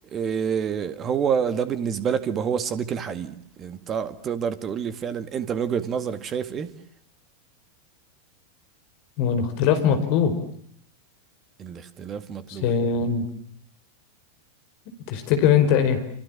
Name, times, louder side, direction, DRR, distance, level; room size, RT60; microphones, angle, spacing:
voice 1, 0.1-6.7 11.6-12.7, right 7 dB, 25° right, 2.1 m, -28 dB
voice 2, 9.2-10.3 12.6-13.2 15.1-16.0, left 7 dB, 45° left, 4.9 m, -21 dB
29.0 x 27.5 x 7.3 m
figure-of-eight pair, 90°, 0 cm